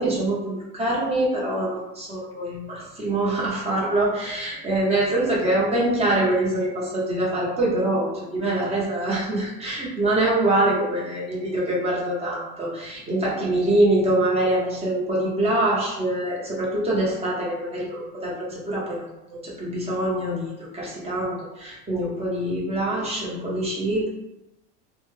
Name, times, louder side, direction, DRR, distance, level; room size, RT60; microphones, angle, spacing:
voice 1, 0.0-24.1, right 1 dB, 20° right, -6 dB, 1.0 m, -24 dB
2.8 x 2.2 x 3.3 m, 0.91 s
cardioid pair, 140°, 31 cm